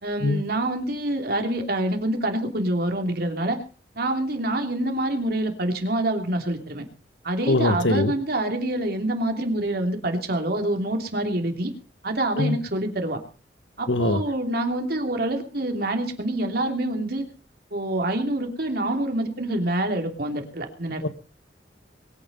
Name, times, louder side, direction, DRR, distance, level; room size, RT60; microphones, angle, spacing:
voice 1, 0.0-3.6 3.9-6.8 7.2-11.7 12.0-13.2 13.8-17.3 17.7-21.1, right 1 dB, 60° right, 3.0 m, -26 dB
voice 2, 7.5-8.1 12.4-12.6 13.9-14.2 21.0-21.1, left 2 dB, 85° left, 1.2 m, -22 dB
22.5 x 8.9 x 5.5 m
head